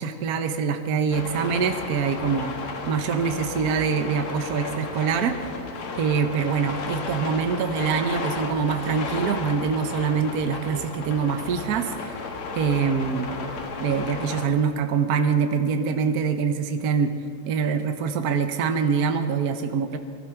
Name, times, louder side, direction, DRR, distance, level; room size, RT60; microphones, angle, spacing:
voice 1, 0.0-2.6 2.9-5.4 6.0-12.2 12.5-13.3 13.8-17.1 17.5-20.0, right 6 dB, 55° right, 7 dB, 1.2 m, -24 dB
sound 1, 1.1-14.5, left 4 dB, 85° left, 2.3 m, -33 dB
19.5 x 12.5 x 5.8 m, 2.4 s
omnidirectional pair, 2.3 m